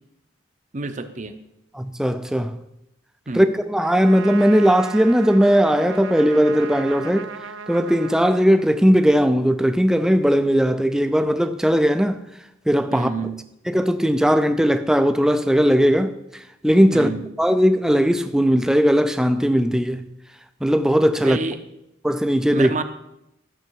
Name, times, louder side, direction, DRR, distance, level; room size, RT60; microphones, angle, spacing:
voice 1, 0.7-1.3 3.3-3.5 12.9-13.4 16.9-17.2 21.2-21.6 22.5-22.8, right 3 dB, 40° right, 0.7 m, -28 dB
voice 2, 1.7-2.6 3.3-7.3 7.7-12.2 12.7-13.3 13.7-17.1 17.4-20.1 20.6-21.4 22.0-22.7, equal, 5° right, 0.4 m, -18 dB
Trumpet, 3.8-9.1, right 5 dB, 75° right, 0.5 m, -36 dB
12.5 x 6.9 x 4.6 m
head